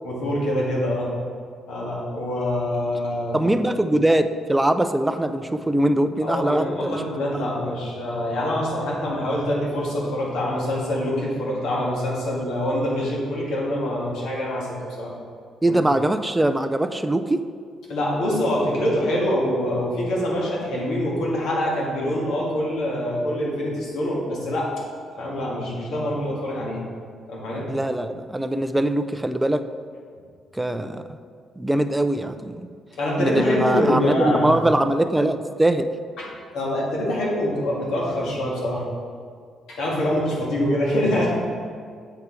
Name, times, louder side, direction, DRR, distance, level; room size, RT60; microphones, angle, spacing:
voice 1, 0.0-1.2 1.7-3.4 6.2-15.1 15.7-15.8 17.9-24.7 25.2-26.8 27.3-27.7 33.0-34.6 36.2-38.8 39.7-41.3, left 1 dB, 85° left, -4 dB, 2.0 m, -25 dB
voice 2, 3.3-7.0 15.6-17.4 27.7-29.6 30.5-31.0 31.6-32.7 33.2-35.9, right 1 dB, 10° right, 8 dB, 0.4 m, -22 dB
7.9 x 4.7 x 4.7 m, 2.1 s
cardioid pair, 90°, 0 cm